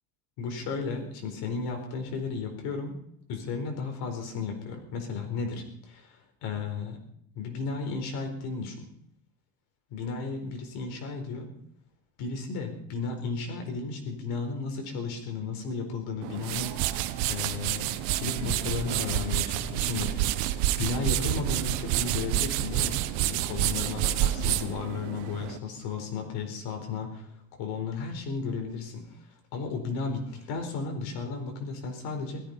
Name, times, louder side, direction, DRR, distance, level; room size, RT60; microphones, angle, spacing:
voice 1, 0.4-3.0 3.3-7.0 7.3-8.8 9.9-11.5 12.2-16.9 17.3-20.3 20.8-23.0 23.2-29.3 29.5-32.4, left 4 dB, 65° left, 4 dB, 4.5 m, -34 dB
sound 1, 16.2-25.6, right 13 dB, 85° right, 1.2 m, -29 dB
17.0 x 14.0 x 5.5 m, 0.69 s
cardioid pair, 170°, 40 cm